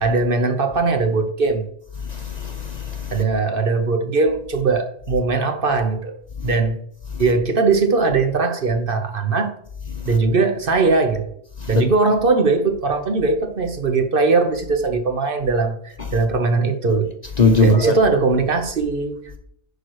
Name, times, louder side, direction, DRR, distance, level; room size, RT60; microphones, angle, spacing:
voice 1, 0.0-1.6 3.1-6.1 6.4-6.8 7.2-9.5 10.0-11.3 11.7-17.1 17.6-19.4, right 4 dB, 50° right, 1.0 m, -20 dB
voice 2, 2.0-3.2 7.1-7.2 9.9-10.1 11.6-11.7 17.4-18.0, left 3 dB, 40° left, 0.8 m, -20 dB
10.5 x 4.6 x 4.7 m
omnidirectional pair, 1.2 m